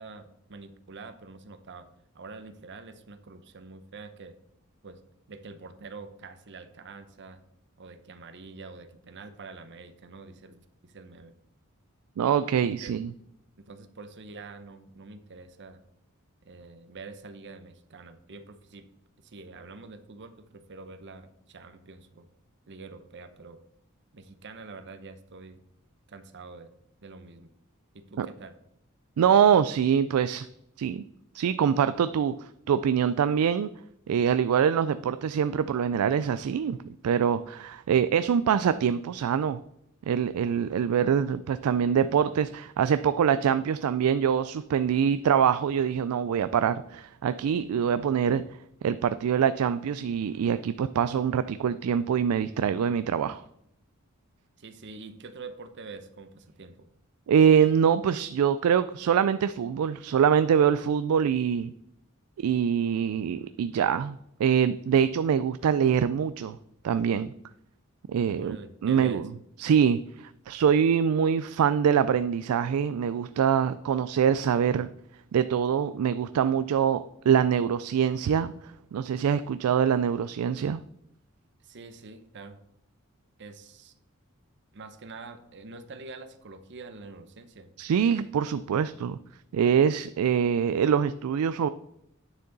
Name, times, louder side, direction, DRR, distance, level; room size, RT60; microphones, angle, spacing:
voice 1, 0.0-1.9 2.1-4.4 4.8-5.0 5.3-7.4 7.8-11.3 12.6-12.9 13.6-15.8 16.4-18.9 19.2-22.3 22.7-23.6 24.1-25.6 26.1-26.7 27.0-27.5 27.9-28.5 54.6-56.9 68.4-69.2 81.6-82.6 83.4-83.9 84.7-87.7, right 3 dB, 55° right, 10 dB, 0.8 m, -45 dB
voice 2, 12.2-13.1 28.2-28.3 29.2-30.5 30.8-31.0 31.3-33.7 34.1-36.8 37.0-39.6 40.1-48.4 48.8-53.4 57.3-61.7 62.4-66.6 66.8-67.3 68.1-68.6 68.8-69.2 69.6-74.9 75.3-78.5 78.9-80.8 87.8-89.2 89.5-91.7, right 8 dB, 85° right, 13 dB, 0.3 m, -24 dB
9.2 x 6.7 x 3.9 m, 0.77 s
head